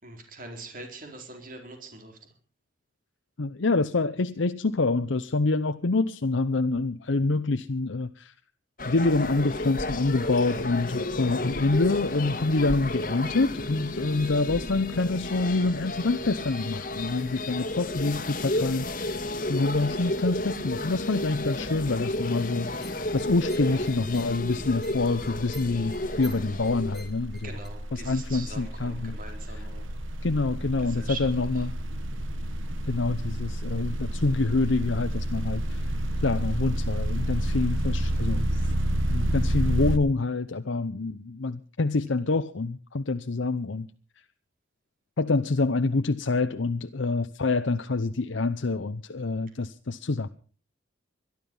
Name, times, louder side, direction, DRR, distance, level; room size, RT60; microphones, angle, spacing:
voice 1, 0.0-2.2 27.4-29.9 30.8-31.3 31.5-31.7, right 3 dB, 45° right, 4 dB, 4.1 m, -42 dB
voice 2, 3.4-8.3 8.8-19.1 19.5-22.7 23.1-27.5 27.9-29.2 30.2-31.7 32.9-35.8 36.2-38.5 39.1-43.9 45.2-50.3, left 3 dB, 70° left, 8 dB, 0.7 m, -26 dB
sound 1, 8.8-27.1, left 1 dB, 45° left, 1.6 m, -32 dB
sound 2, 22.8-27.7, right 1 dB, ahead, 2.8 m, -51 dB
sound 3, 23.2-23.6 23.8-40.0, right 1 dB, 80° right, 1.4 m, -30 dB
22.0 x 12.0 x 5.3 m, 0.40 s
head